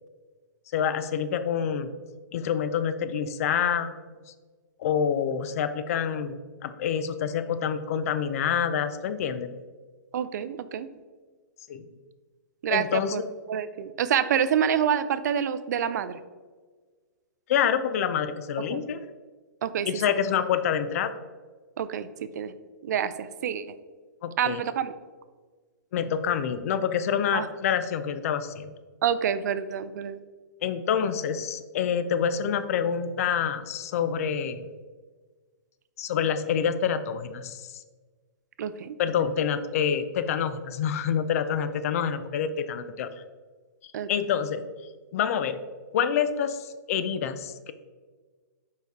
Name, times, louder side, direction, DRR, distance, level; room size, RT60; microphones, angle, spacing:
voice 1, 0.7-1.9 2.3-4.1 4.8-9.5 11.7-11.8 12.7-13.2 17.5-19.0 19.9-21.1 24.2-24.6 25.9-28.7 30.6-34.7 36.0-37.8 39.0-43.2 44.1-44.6 45.1-45.6 45.9-47.7, left 8 dB, 50° left, 11 dB, 0.5 m, -27 dB
voice 2, 10.1-10.9 12.6-13.2 13.5-16.2 18.7-18.8 19.6-19.9 21.8-22.5 22.8-23.8 24.4-24.9 27.3-27.5 29.0-30.2 38.6-39.0 43.9-44.1, right 8 dB, 65° right, 13 dB, 0.4 m, -27 dB
5.1 x 4.7 x 4.6 m, 1.4 s
hypercardioid pair, 155°, 10 cm